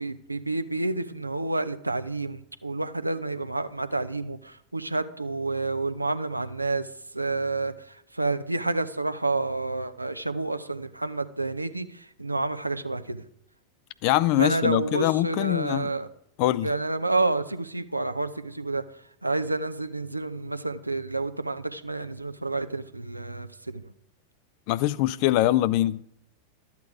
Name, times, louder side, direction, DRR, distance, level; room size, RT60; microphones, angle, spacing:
voice 1, 0.0-6.9 7.1-13.2 14.4-16.1 16.6-18.8 19.2-23.8, right 2 dB, 85° right, 0.7 m, -29 dB
voice 2, 14.0-15.9 16.4-16.7 24.7-26.0, left 14 dB, 45° left, 0.5 m, -23 dB
13.0 x 8.3 x 4.9 m
figure-of-eight pair, 90°, 0 cm